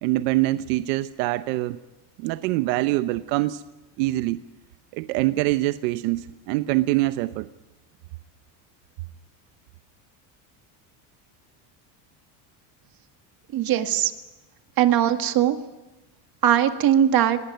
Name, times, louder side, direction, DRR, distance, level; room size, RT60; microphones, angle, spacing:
voice 1, 0.0-1.8 2.2-3.6 4.0-4.4 4.9-7.5, right 18 dB, 90° right, 12 dB, 0.9 m, -24 dB
voice 2, 13.5-14.1 14.8-15.6 16.4-17.4, right 10 dB, 50° right, 7 dB, 2.0 m, -20 dB
20.0 x 19.0 x 9.3 m, 1.0 s
cardioid pair, 125°, 47 cm